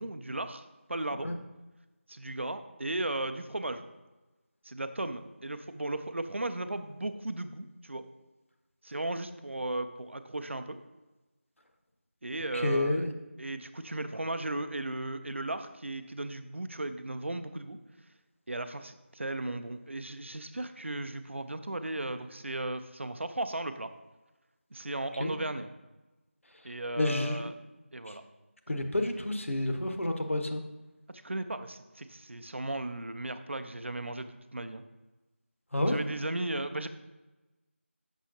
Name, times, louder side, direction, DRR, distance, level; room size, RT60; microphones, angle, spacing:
voice 1, 0.0-1.3 2.1-3.8 4.6-8.0 8.8-10.8 12.2-13.1 13.4-17.8 18.5-23.9 24.7-25.7 26.6-27.6 27.9-28.2 31.1-34.8 35.9-36.9, right 2 dB, 65° right, 10 dB, 0.5 m, -36 dB
voice 2, 12.5-13.1 25.2-25.3 27.0-27.5 28.1-28.2 28.7-30.6 35.7-36.0, left 1 dB, 80° left, 5 dB, 0.9 m, -29 dB
6.3 x 6.0 x 2.7 m, 1.1 s
figure-of-eight pair, 175°, 7 cm